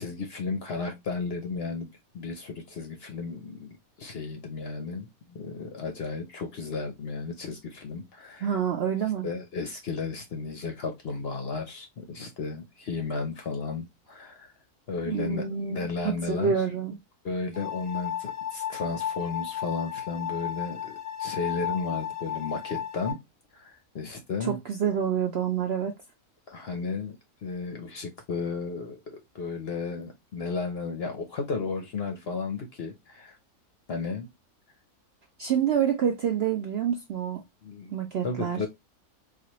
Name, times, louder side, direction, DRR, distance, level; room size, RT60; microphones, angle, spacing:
voice 1, 0.0-1.9 2.1-8.5 9.2-14.5 14.9-16.5 17.2-23.2 23.5-24.6 26.5-27.2 27.4-33.4 33.9-34.3 37.6-38.0 38.2-38.7, left 4 dB, 55° left, 0.7 m, -34 dB
voice 2, 8.4-9.3 15.0-16.9 24.4-25.9 35.4-37.4 37.9-38.7, right 8 dB, 65° right, 0.6 m, -27 dB
sound 1, 17.5-23.1, left 9 dB, 10° left, 0.8 m, -34 dB
4.1 x 2.5 x 2.9 m
omnidirectional pair, 1.6 m